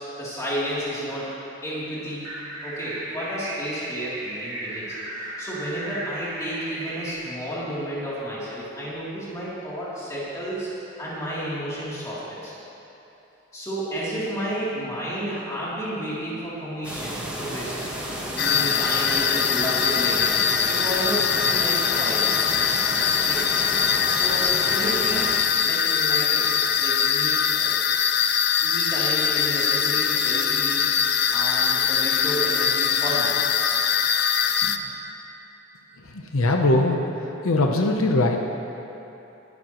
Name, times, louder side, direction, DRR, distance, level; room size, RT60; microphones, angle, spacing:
voice 1, 0.2-1.3 1.6-2.3 2.6-4.9 5.1-10.7 11.0-12.5 13.5-17.7 18.3-22.3 23.3-23.5 24.1-27.7 28.6-30.9 31.3-33.4 34.6-34.7, equal, 15° left, -9 dB, 3.1 m, -31 dB
sound 1, 2.2-7.1, right 1 dB, 50° right, 2.2 m, -35 dB
sound 2, 16.8-25.4, equal, 5° right, 1.5 m, -32 dB
sound 3, 18.4-34.8, left 8 dB, 50° left, 0.5 m, -22 dB
voice 2, 36.3-37.0 37.4-38.4, left 2 dB, 85° left, 2 dB, 0.8 m, -20 dB
20.0 x 11.0 x 3.1 m, 3.0 s
head